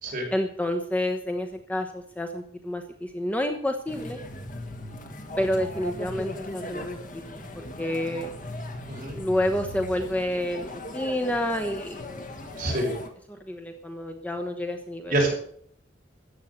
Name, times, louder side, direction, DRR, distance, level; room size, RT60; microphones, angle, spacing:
voice 1, 0.3-4.2 5.4-8.3 9.1-12.0 13.5-15.1, left 1 dB, 10° left, 4 dB, 1.0 m, -29 dB
sound 1, 3.9-13.1, left 1 dB, 45° left, 1.8 m, -38 dB
voice 2, 12.6-12.9 15.1-15.3, right 1 dB, 45° right, -1 dB, 5.5 m, -26 dB
14.0 x 8.3 x 8.3 m, 0.64 s
head